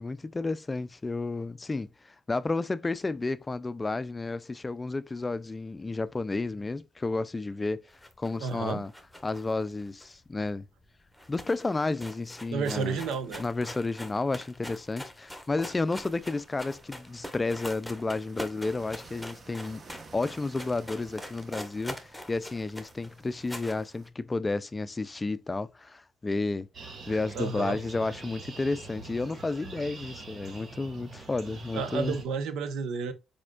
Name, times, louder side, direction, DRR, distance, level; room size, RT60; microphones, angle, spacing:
voice 1, 0.0-7.8 8.2-8.9 9.2-10.7 11.3-13.0 13.4-19.8 20.1-26.7 27.1-32.2, left 3 dB, 20° left, 0.4 m, -31 dB
sound 1, 7.9-10.6 10.8-10.9 11.1-23.8, left 1 dB, ahead, 1.0 m, -43 dB
voice 2, 8.4-8.8 12.5-13.4 27.3-27.8 31.7-33.1, right 5 dB, 85° right, 0.8 m, -31 dB
sound 2, 15.7-24.1, right 4 dB, 40° right, 0.9 m, -53 dB
sound 3, 26.7-32.2, right 4 dB, 60° right, 1.6 m, -45 dB
5.0 x 4.3 x 2.3 m
cardioid pair, 90°, 0 cm